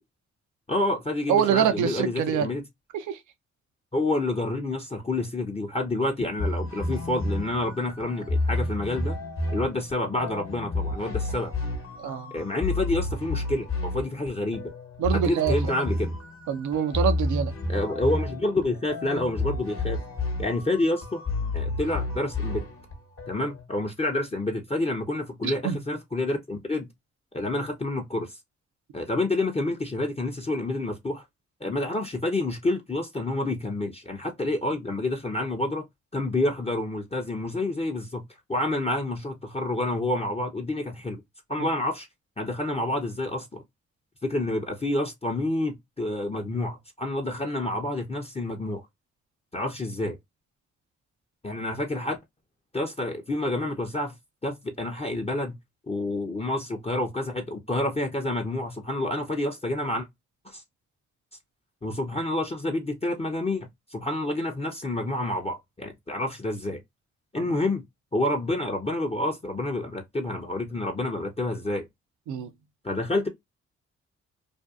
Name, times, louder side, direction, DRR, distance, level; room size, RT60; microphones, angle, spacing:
voice 1, 0.7-2.6 3.9-9.2 9.5-11.5 12.3-14.7 15.1-16.1 17.7-20.0 20.4-21.2 21.5-22.7 23.3-26.9 27.3-28.4 28.9-31.2 31.6-35.8 36.1-38.2 38.5-41.2 41.5-42.1 42.4-43.6 44.2-48.9 49.5-50.2 51.4-52.2 52.7-54.1 54.4-55.6 55.9-60.1 60.4-60.6 61.8-66.8 67.3-67.8 68.1-71.9 72.8-73.3, left 2 dB, 20° left, 0.6 m, -28 dB
voice 2, 1.3-2.5 2.9-3.2 12.0-12.3 15.0-15.6 16.5-17.5 25.4-25.8 67.4-67.5 72.3-72.5, right 8 dB, 85° right, 0.5 m, -25 dB
sound 1, 6.4-23.7, left 2 dB, 50° left, 0.9 m, -30 dB
2.5 x 2.2 x 2.3 m
supercardioid pair, 50°, 29 cm